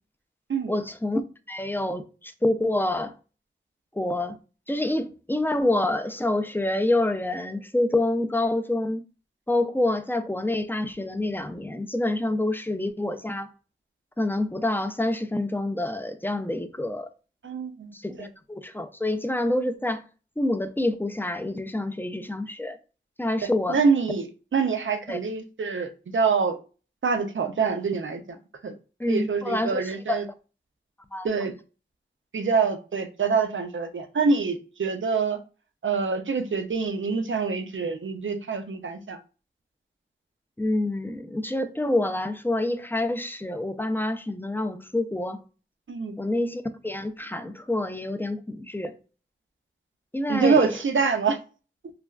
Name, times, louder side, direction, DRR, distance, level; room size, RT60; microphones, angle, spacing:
voice 1, 0.7-1.2 1.5-3.1 4.0-4.4 4.7-9.0 9.5-13.5 14.2-17.1 17.9-20.0 20.4-22.8 23.2-23.8 25.1-25.2 29.0-30.2 31.1-31.3 40.6-45.4 46.2-48.9 50.1-50.7, left 1 dB, 10° left, 0.3 m, -27 dB
voice 2, 17.4-18.3 23.7-26.6 27.0-28.4 28.6-28.7 29.1-30.2 31.2-31.5 32.3-35.4 35.8-39.2 45.9-46.2 50.3-51.4, right 5 dB, 85° right, 0.4 m, -25 dB
3.2 x 2.3 x 2.2 m
wide cardioid pair, 45°, 20 cm